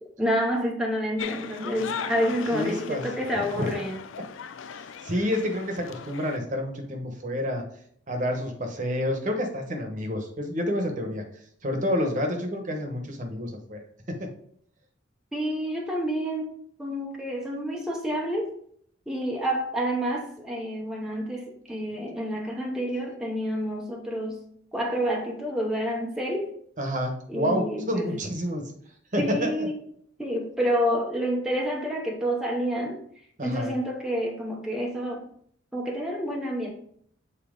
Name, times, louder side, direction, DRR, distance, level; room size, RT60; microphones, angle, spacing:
voice 1, 0.2-4.0 15.3-16.5 16.8-18.5 19.1-24.4 24.7-26.5 27.3-28.1 29.2-29.7 30.2-33.0 33.4-35.3 35.7-36.7, equal, 5° right, -1 dB, 0.8 m, -28 dB
sound 1, 1.2-6.4, left 7 dB, 85° left, 0.4 m, -38 dB
voice 2, 2.5-3.0 3.3-3.7 4.2-4.3 4.7-7.6 8.1-11.2 11.6-13.8 14.1-14.3 26.8-28.6 29.1-29.7 33.4-33.7, left 1 dB, 40° right, 4 dB, 1.1 m, -29 dB
7.3 x 4.1 x 3.8 m, 0.65 s
head